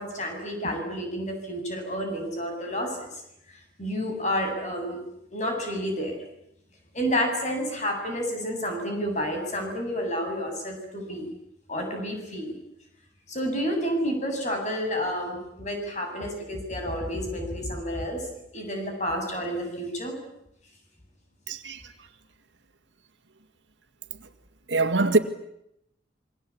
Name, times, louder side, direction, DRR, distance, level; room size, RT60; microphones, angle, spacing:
voice 1, 0.0-3.1 3.8-5.0 5.3-6.2 6.9-11.3 11.7-12.5 13.3-20.2, equal, 40° left, 7.6 m, -30 dB
voice 2, 21.5-21.9 24.2-24.3 24.7-25.2, right 3 dB, 80° right, 2.0 m, -23 dB
27.5 x 23.5 x 8.6 m
head